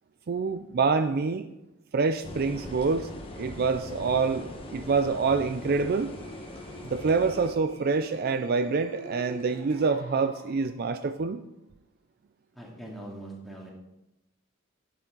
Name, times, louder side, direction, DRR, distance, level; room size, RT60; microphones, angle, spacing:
voice 1, 0.3-1.5 1.9-6.1 6.8-11.4, right 4 dB, 50° right, 9 dB, 0.4 m, -26 dB
sound 1, 2.2-7.5, left 1 dB, 25° left, 1.2 m, -41 dB
sound 2, 6.0-11.0, right 1 dB, 65° right, 2.4 m, -47 dB
voice 2, 12.5-13.7, right 1 dB, ahead, -3 dB, 2.2 m, -42 dB
11.0 x 8.4 x 3.8 m, 0.92 s
head